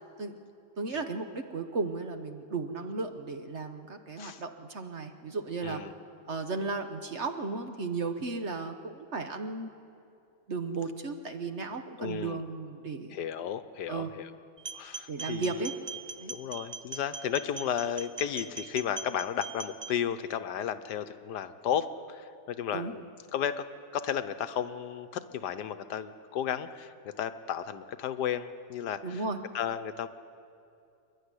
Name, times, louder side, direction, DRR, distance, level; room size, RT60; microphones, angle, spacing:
voice 1, 0.8-5.8 6.3-9.7 10.5-13.2 13.9-14.1 15.1-15.7 16.2-16.3 22.7-22.9 29.0-29.4, right 3 dB, 45° right, 6 dB, 1.2 m, -35 dB
voice 2, 12.0-12.4 13.1-14.3 14.7-15.6 16.3-23.0 23.3-23.6 23.9-29.2 29.5-30.1, left 9 dB, 80° left, 11 dB, 1.4 m, -33 dB
sound 1, 14.6-19.9, right 4 dB, 30° right, 0.4 m, -41 dB
28.0 x 11.5 x 9.9 m, 2.6 s
omnidirectional pair, 1.8 m